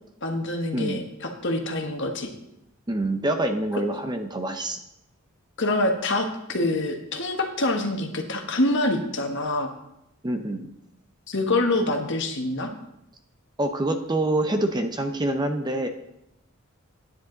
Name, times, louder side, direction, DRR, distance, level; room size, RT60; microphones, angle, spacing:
voice 1, 0.2-2.3 5.6-9.7 11.3-12.7, left 2 dB, 55° left, 4 dB, 1.3 m, -26 dB
voice 2, 0.7-1.1 2.9-4.8 10.2-10.7 13.6-15.9, right 1 dB, 20° right, 7 dB, 0.7 m, -26 dB
10.0 x 9.6 x 3.9 m, 0.82 s
head